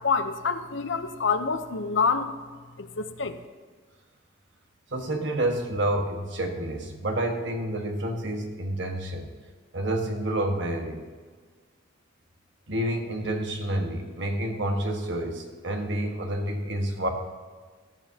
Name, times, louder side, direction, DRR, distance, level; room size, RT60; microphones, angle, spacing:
voice 1, 0.0-2.3 2.8-3.4, left 5 dB, 70° left, 9 dB, 0.8 m, -27 dB
voice 2, 4.9-9.3 9.7-11.1 12.7-17.1, right 1 dB, 65° right, 3 dB, 1.6 m, -29 dB
18.0 x 12.0 x 2.9 m, 1.5 s
head